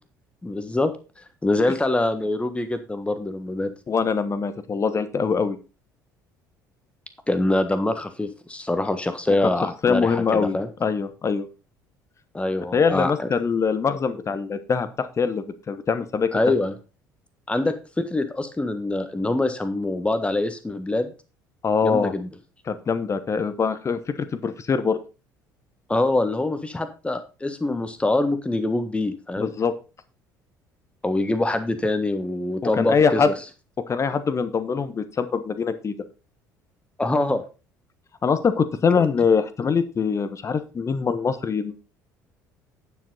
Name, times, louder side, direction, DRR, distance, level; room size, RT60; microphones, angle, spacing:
voice 1, 0.4-0.9 1.4-3.7 7.3-10.7 12.3-13.3 16.3-16.7 17.5-21.1 21.8-22.3 25.9-29.5 31.0-33.2 37.0-37.4, left 2 dB, 10° left, 9 dB, 1.4 m, -24 dB
voice 2, 3.9-5.6 9.3-9.4 9.6-11.5 12.7-16.3 21.6-22.1 22.7-25.0 29.4-29.7 32.6-33.3 33.9-35.9 38.2-41.8, left 5 dB, 30° left, 12 dB, 1.1 m, -23 dB
9.2 x 7.6 x 4.0 m, 0.32 s
figure-of-eight pair, 55°, 10 cm